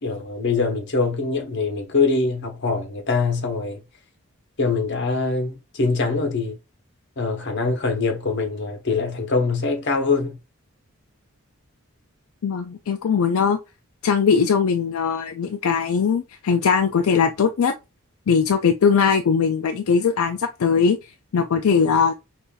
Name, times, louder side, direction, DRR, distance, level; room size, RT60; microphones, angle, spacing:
voice 1, 0.0-3.8 4.6-6.6 7.2-10.4, left 4 dB, 55° left, 0.9 m, -23 dB
voice 2, 12.4-13.6 14.0-17.7 18.3-21.0 21.3-22.1, left 6 dB, 75° left, 0.4 m, -20 dB
5.3 x 2.5 x 2.3 m
head